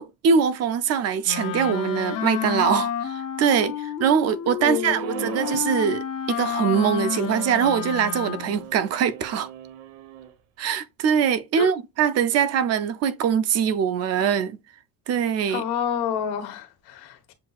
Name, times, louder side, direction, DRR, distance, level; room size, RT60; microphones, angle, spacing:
voice 1, 0.0-9.5 10.6-14.6 15.1-15.6, right 7 dB, 45° right, 0.5 m, -23 dB
Wind instrument woodwind instrument, 1.2-8.7, left 9 dB, 40° left, 0.7 m, -30 dB
voice 2, 4.6-5.4 11.6-11.7 15.5-17.3, left 9 dB, 80° left, 1.2 m, -29 dB
sound 1, 4.8-5.8 6.7-10.3, right 9 dB, 80° right, 1.1 m, -40 dB
7.4 x 2.6 x 2.3 m
cardioid pair, 170°, 37 cm